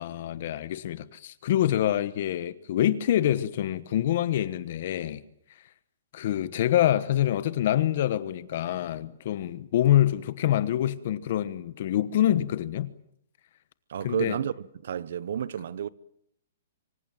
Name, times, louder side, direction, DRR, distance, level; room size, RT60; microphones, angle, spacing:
voice 1, 0.0-5.2 6.1-12.9 14.0-14.4, left 12 dB, 40° left, 1.2 m, -26 dB
voice 2, 13.9-15.9, right 9 dB, 55° right, 1.0 m, -31 dB
25.5 x 24.5 x 7.6 m
hypercardioid pair, 180°, 0 cm